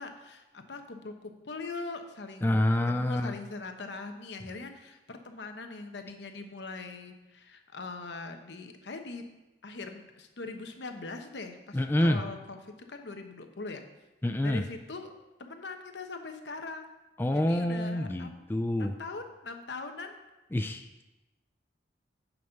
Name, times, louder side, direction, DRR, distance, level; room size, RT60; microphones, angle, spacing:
voice 1, 0.0-2.6 2.9-9.2 9.6-13.8 14.4-15.1 15.4-16.9 17.3-18.4 18.8-20.2, left 3 dB, 75° left, 5 dB, 1.0 m, -41 dB
voice 2, 2.4-3.3 11.7-12.2 14.2-14.6 17.2-18.9 20.5-21.0, left 1 dB, 10° left, 6 dB, 0.4 m, -27 dB
9.3 x 5.5 x 5.7 m, 1.0 s
head